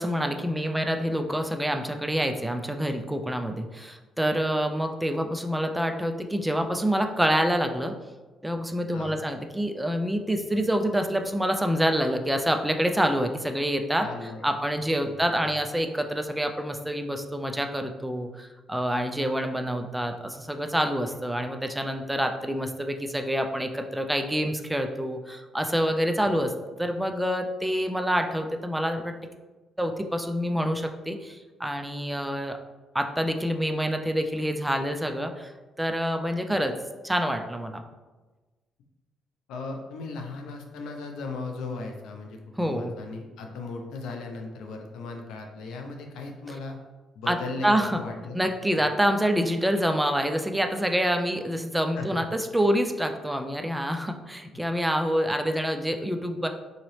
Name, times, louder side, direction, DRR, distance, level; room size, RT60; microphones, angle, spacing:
voice 1, 0.0-7.9 8.4-14.1 14.4-26.5 26.8-29.1 29.8-32.6 32.9-35.5 35.8-36.7 37.0-37.8 42.6-42.9 47.3-47.4 47.6-48.0 48.3-56.5, equal, 5° right, 5 dB, 0.3 m, -27 dB
voice 2, 14.0-14.5 15.1-15.6 39.5-46.8 47.1-48.4 48.7-48.8 51.9-52.1, left 3 dB, 85° left, 3 dB, 0.5 m, -37 dB
3.9 x 2.8 x 3.1 m, 1.2 s
cardioid pair, 90°, 0 cm